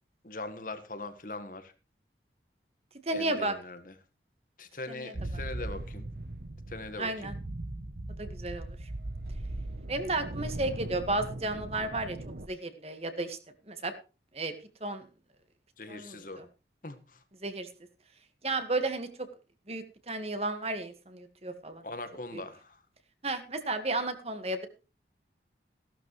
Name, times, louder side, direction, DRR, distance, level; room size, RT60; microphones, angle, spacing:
voice 1, 0.2-1.7 3.1-3.9 4.6-6.1 6.7-7.3 15.8-16.4 16.8-17.2 21.8-22.8, left 2 dB, 50° left, 9 dB, 1.6 m, -41 dB
voice 2, 3.1-3.5 4.9-5.1 7.0-7.4 8.2-8.7 9.9-12.2 12.5-13.4 13.7-13.9 14.3-14.5 14.8-15.1 15.9-16.4 17.4-17.7 18.4-19.3 19.7-21.8 22.3-22.4 23.2-24.6, right 2 dB, 35° right, 8 dB, 1.8 m, -33 dB
sound 1, 5.1-12.5, right 1 dB, 60° right, 1.0 m, -39 dB
16.0 x 12.0 x 3.2 m, 0.33 s
head